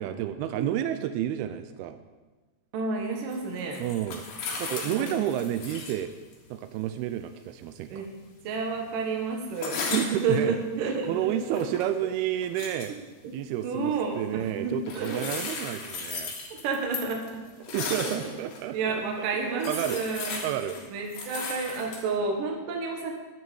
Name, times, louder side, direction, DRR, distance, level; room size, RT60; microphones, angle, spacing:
voice 1, 0.0-2.0 3.8-4.3 4.6-6.1 6.5-8.1 9.9-10.6 11.1-12.9 13.3-16.3 17.7-19.0 19.5-20.0 20.4-20.8, right 11 dB, 85° right, 9 dB, 2.3 m, -30 dB
voice 2, 2.7-3.8 4.8-5.1 7.9-8.1 8.4-11.6 13.2-13.3 13.6-15.5 16.5-17.2 18.0-18.1 18.7-20.4 20.9-23.1, right 4 dB, 65° right, 1 dB, 2.7 m, -30 dB
sound 1, 3.3-6.0 6.3-6.4 9.5-10.4 11.3-11.9 12.4-12.9 14.9-18.6 19.1-19.2 19.5-22.1, left 4 dB, 70° left, 3.6 m, -36 dB
11.0 x 9.3 x 7.1 m, 1.3 s
omnidirectional pair, 4.8 m